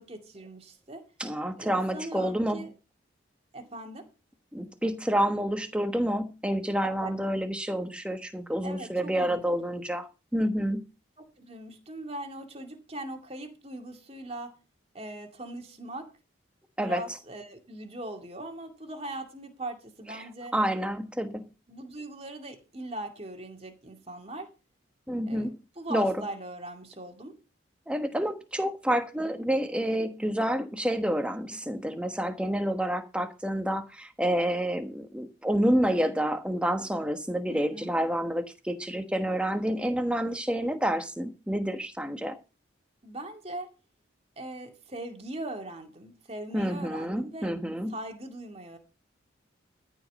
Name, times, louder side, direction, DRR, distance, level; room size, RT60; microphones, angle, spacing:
voice 1, 0.0-1.0 1.6-2.7 3.5-4.0 6.8-7.1 8.6-9.4 11.2-14.5 14.9-16.1 16.8-20.5 21.7-24.5 25.3-27.3 37.5-37.9 43.0-43.7 44.4-47.5 47.9-48.8, right 1 dB, 30° right, 2.3 m, -40 dB
voice 2, 1.2-2.6 4.5-10.8 16.8-17.0 20.5-21.4 25.1-25.5 25.9-26.2 27.9-42.4 46.5-47.9, equal, 5° right, 1.2 m, -28 dB
14.0 x 5.2 x 7.5 m
head